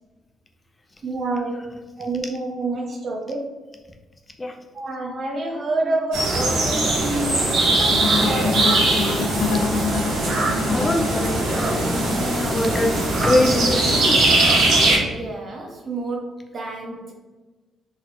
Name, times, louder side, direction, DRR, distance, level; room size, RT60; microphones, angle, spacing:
voice 1, 1.0-1.6 2.0-3.5 4.7-7.4 8.3-8.9 14.9-17.1, right 2 dB, 45° right, 0 dB, 0.6 m, -28 dB
sound 1, 6.1-15.0, right 2 dB, 80° right, 1.4 m, -20 dB
sound 2, 7.8-12.9, left 5 dB, 75° left, 0.5 m, -27 dB
voice 2, 10.7-14.4, left 1 dB, 25° left, 3 dB, 0.5 m, -24 dB
3.9 x 2.8 x 2.9 m, 1.2 s
cardioid pair, 95°, 0 cm